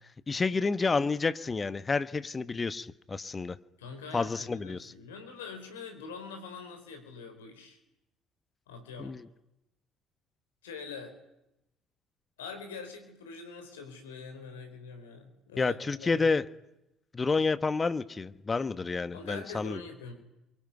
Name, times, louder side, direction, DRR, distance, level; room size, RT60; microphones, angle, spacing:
voice 1, 0.3-3.6 4.1-4.9 9.0-9.2 15.6-16.5 17.1-19.8, left 4 dB, 30° left, 14 dB, 1.3 m, -29 dB
voice 2, 3.8-7.8 8.7-9.2 10.6-11.1 12.4-16.3 19.1-20.1, left 5 dB, 80° left, 6 dB, 4.5 m, -44 dB
28.0 x 23.0 x 9.3 m, 0.89 s
hypercardioid pair, 55°, 0 cm